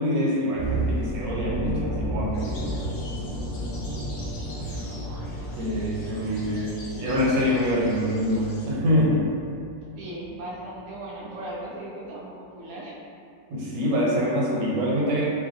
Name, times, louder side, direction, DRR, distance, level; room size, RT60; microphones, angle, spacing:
voice 1, 0.0-2.9 5.6-9.3 13.5-15.3, left 1 dB, 75° right, -4 dB, 1.2 m, -25 dB
sound 1, 0.6-10.6 10.8-11.0, right 1 dB, 20° right, 1.0 m, -33 dB
sound 2, 2.3-8.7, left 2 dB, 65° left, 0.7 m, -47 dB
voice 2, 9.9-12.9, right 1 dB, 60° right, -7 dB, 0.8 m, -37 dB
2.9 x 2.5 x 2.5 m, 2.3 s
omnidirectional pair, 1.9 m